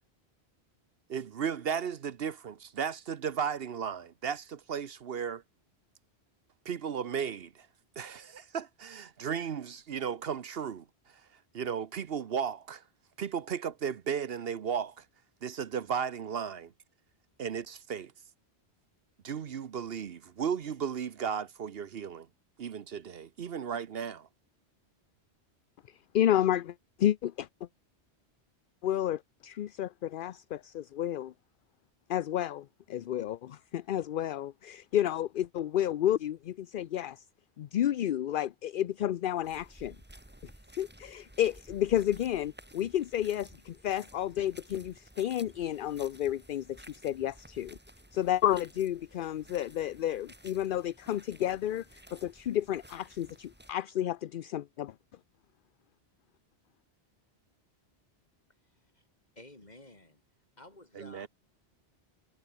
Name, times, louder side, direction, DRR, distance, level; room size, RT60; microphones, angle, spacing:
voice 1, 1.1-5.4 6.6-7.7 8.0-10.8 11.5-12.8 13.2-15.0 15.4-16.7 17.4-18.1 19.2-22.3 22.6-24.3 60.9-61.3, right 7 dB, 65° right, 1.0 m, -35 dB
voice 2, 26.1-27.5 28.8-31.3 32.1-37.2 37.6-40.0 40.8-47.8 48.1-54.9, left 11 dB, 60° left, 0.7 m, -31 dB
sound 1, 39.4-53.7, right 1 dB, 10° right, 1.8 m, -55 dB
voice 3, 58.6-59.0 59.4-60.2 60.6-61.3, left 2 dB, 40° left, 3.9 m, -53 dB
omnidirectional pair, 1.1 m